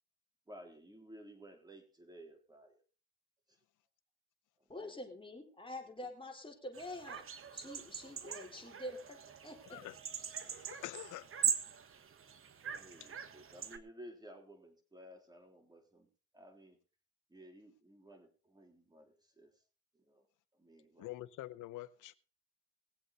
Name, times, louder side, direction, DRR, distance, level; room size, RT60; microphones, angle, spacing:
voice 1, 0.5-2.8 3.5-3.6 4.6-5.0 6.0-6.1 12.6-16.1 16.3-16.8 17.3-19.6 19.9-20.3 20.5-21.1, equal, 15° right, 3.6 m, -56 dB
voice 2, 4.7-7.2 7.5-9.2 9.4-9.8, left 1 dB, 15° left, 4.0 m, -46 dB
sound 1, 6.7-13.8, right 7 dB, 45° right, 1.3 m, -41 dB
voice 3, 9.7-10.0 10.4-11.3 21.0-22.1, left 16 dB, 85° left, 0.9 m, -46 dB
20.0 x 7.9 x 4.1 m
cardioid pair, 90°, 30 cm